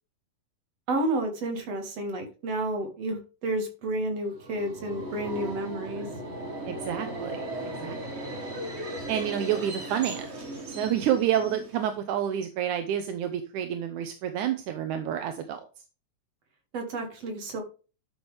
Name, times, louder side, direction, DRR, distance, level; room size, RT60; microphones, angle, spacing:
voice 1, 0.9-6.1 16.7-17.6, right 1 dB, 55° right, 3 dB, 3.1 m, -31 dB
Subway metro underground, 4.3-12.0, right 1 dB, 30° right, 1.4 m, -37 dB
voice 2, 6.7-7.4 7.8-8.0 9.1-10.3 10.7-15.6, right 10 dB, 80° right, 7 dB, 2.4 m, -29 dB
12.0 x 6.3 x 3.4 m, 0.34 s
omnidirectional pair, 3.5 m